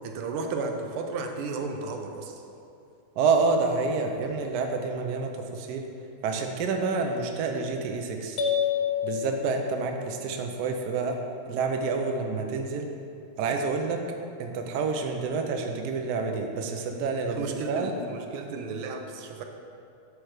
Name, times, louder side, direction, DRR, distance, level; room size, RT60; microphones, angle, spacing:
voice 1, 0.0-2.4 17.3-19.4, right 3 dB, 85° right, 4 dB, 1.6 m, -33 dB
voice 2, 3.2-5.9 6.2-8.4 9.0-11.2 11.5-12.9 13.4-14.0 14.4-17.9, right 4 dB, 70° right, 4 dB, 1.1 m, -28 dB
sound 1, 8.4-10.3, left 8 dB, 75° left, 1.8 m, -29 dB
9.7 x 3.3 x 6.4 m, 2.6 s
omnidirectional pair, 2.3 m